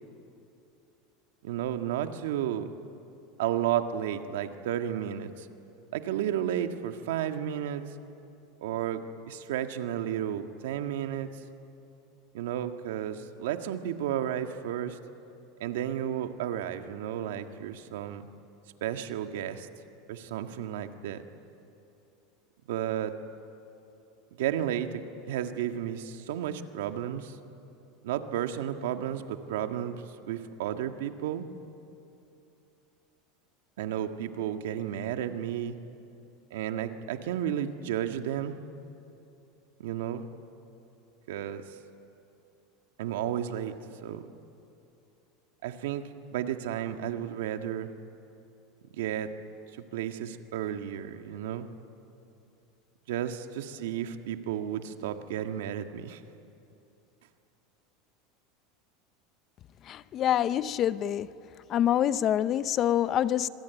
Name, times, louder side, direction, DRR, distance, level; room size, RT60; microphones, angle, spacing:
voice 1, 1.4-2.7 3.4-5.5 5.9-7.8 8.6-11.3 12.3-15.0 15.6-18.3 18.8-19.7 20.1-21.2 22.7-23.1 24.4-27.3 28.0-31.5 33.8-35.8 36.5-38.6 39.8-40.2 41.3-41.6 43.0-44.2 45.6-47.9 48.9-49.3 49.9-51.7 53.1-56.2, right 10 dB, 85° right, 1.8 m, -32 dB
voice 2, 59.9-61.3 61.7-63.5, left 11 dB, 35° left, 0.7 m, -26 dB
25.5 x 24.5 x 9.4 m
supercardioid pair, 140°, 0 cm